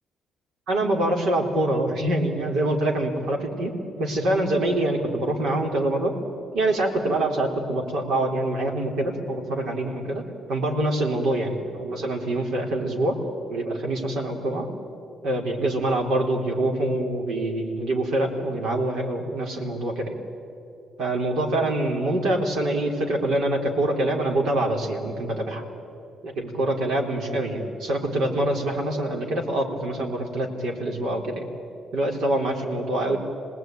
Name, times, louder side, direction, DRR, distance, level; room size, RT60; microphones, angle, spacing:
voice 1, 0.7-3.7 4.0-6.1 6.5-10.2 10.5-13.1 13.5-14.7 15.2-20.1 21.0-25.6 26.2-31.4 31.9-33.2, right 1 dB, 75° right, 2 dB, 3.8 m, -25 dB
27.5 x 19.5 x 9.3 m, 3.0 s
cardioid pair, 90°, 0 cm